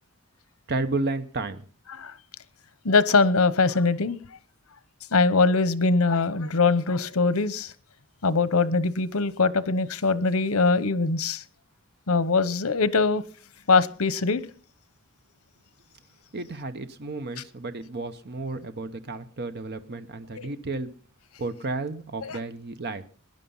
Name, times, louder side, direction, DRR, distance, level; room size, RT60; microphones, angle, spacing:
voice 1, 0.7-1.6 16.3-20.9 21.4-23.0, right 3 dB, 50° right, 0.9 m, -32 dB
voice 2, 2.8-4.2 5.1-7.7 8.2-11.4 12.1-13.2 13.7-14.4 20.4-20.5 22.2-22.4, left 4 dB, 85° left, 1.0 m, -22 dB
18.5 x 10.5 x 5.6 m
head